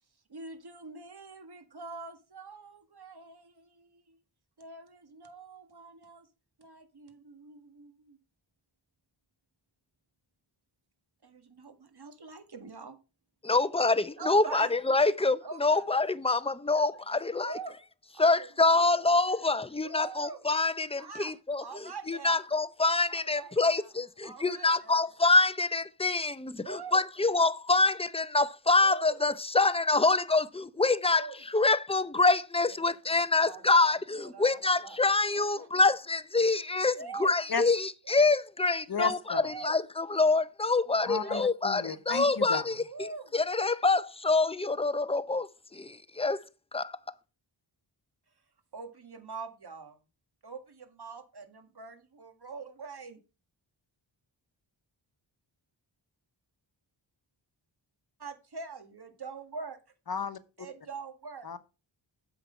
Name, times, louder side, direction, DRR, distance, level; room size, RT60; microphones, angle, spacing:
voice 1, 0.3-4.2 4.6-6.3 6.6-8.2 11.2-13.0 14.2-14.7 15.4-15.9 16.4-17.7 18.1-19.1 19.8-20.4 20.9-21.3 21.6-22.5 23.1-23.9 24.2-25.1 26.6-27.0 28.8-29.2 31.1-31.4 32.7-32.8 33.1-35.0 35.3-35.9 36.9-37.3 38.0-38.2 39.4-39.7 41.1-41.5 42.8-43.3 48.7-50.0 50.4-53.2 58.2-59.8 60.6-61.5, right 4 dB, 55° right, 1.8 m, -44 dB
voice 2, 13.4-17.5 18.2-21.6 22.1-31.3 31.5-42.8 43.3-46.4 46.7-47.0, left 3 dB, 15° left, 0.6 m, -26 dB
voice 3, 38.9-39.5 41.0-42.7 60.1-60.4 61.4-61.6, left 5 dB, 50° left, 1.1 m, -33 dB
7.8 x 5.8 x 5.3 m
cardioid pair, 50°, 47 cm